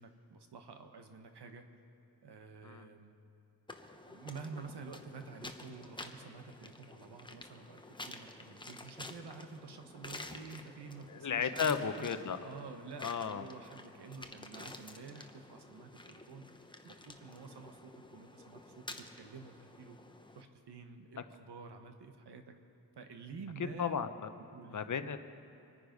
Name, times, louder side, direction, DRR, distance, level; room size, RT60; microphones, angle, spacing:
voice 1, 0.0-1.6 2.2-3.2 4.1-16.5 16.8-20.0 20.3-22.6 23.0-24.0 24.4-25.1, right 4 dB, 80° right, 6 dB, 1.3 m, -49 dB
sound 1, 3.7-20.4, left 2 dB, 10° left, 0.8 m, -50 dB
voice 2, 11.1-12.4 13.0-13.4 23.8-24.3 24.7-25.2, left 6 dB, 50° left, 10 dB, 0.8 m, -34 dB
24.5 x 9.7 x 5.3 m, 2.8 s
wide cardioid pair, 125°, 40 cm